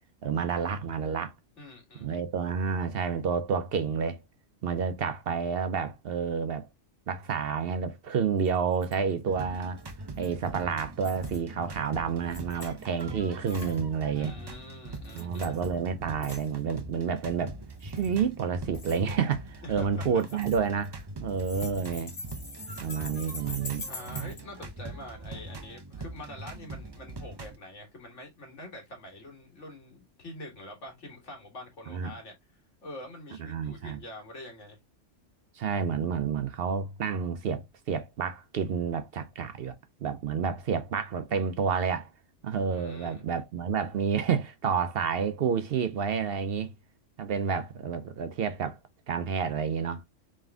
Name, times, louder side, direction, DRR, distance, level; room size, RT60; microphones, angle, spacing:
voice 1, 0.2-1.3 2.0-4.2 4.6-6.7 7.1-9.8 10.2-14.3 15.1-17.6 17.8-22.1 22.8-23.9 24.1-24.3 31.9-32.1 33.5-34.0 35.6-39.8 40.0-42.1 42.4-46.7 47.2-48.8 49.1-50.0, right 6 dB, 60° right, 0.7 m, -29 dB
voice 2, 1.6-2.1 14.1-15.6 19.6-20.2 23.9-32.3 32.8-34.8 42.7-43.2, left 1 dB, 75° left, 2.0 m, -45 dB
sound 1, 8.5-8.6 8.7-8.9 9.9-10.5 11.0-11.4 12.2-13.0 13.5-13.8 14.9-15.7 16.2-16.5 17.7-18.2 18.7-19.0 20.2-21.0 21.3-24.4, left 2 dB, 50° left, 1.7 m, -43 dB
sound 2, 9.1-27.6, right 2 dB, 35° right, 0.4 m, -42 dB
3.7 x 3.2 x 3.3 m
omnidirectional pair, 1.2 m